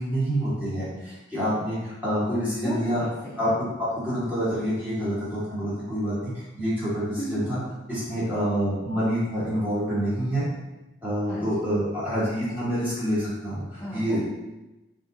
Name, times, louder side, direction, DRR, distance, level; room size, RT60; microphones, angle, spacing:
voice 1, 0.0-3.0 3.4-3.5 3.8-7.6 7.9-10.5 11.0-14.2, equal, 10° right, -10 dB, 1.2 m, -27 dB
voice 2, 2.6-3.5 7.2-7.4 11.3-11.6 13.8-14.2, equal, 10° left, -10 dB, 0.5 m, -35 dB
3.8 x 2.7 x 2.6 m, 1.0 s
head